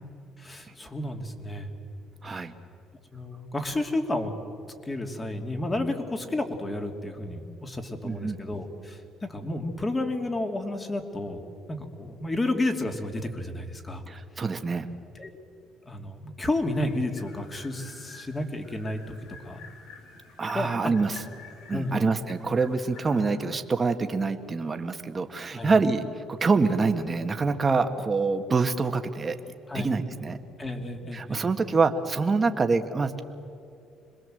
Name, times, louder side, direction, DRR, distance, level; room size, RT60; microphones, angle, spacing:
voice 1, 0.4-1.7 2.3-2.5 3.1-4.3 4.8-11.4 11.7-14.0 15.1-15.4 15.8-19.1 19.4-19.6 20.5-20.7 21.7-22.2 25.5-25.7 29.7-29.9 30.6-31.4, left 2 dB, 20° left, 4 dB, 2.8 m, -31 dB
voice 2, 2.2-2.5 8.0-8.4 14.1-14.9 20.4-21.2 21.7-29.4 29.7-30.4 31.1-33.2, right 4 dB, 30° right, 7 dB, 1.6 m, -26 dB
sound 1, 16.6-23.3, left 4 dB, 80° left, 4.9 m, -49 dB
26.5 x 21.5 x 7.8 m, 2.5 s
cardioid pair, 100°, 0 cm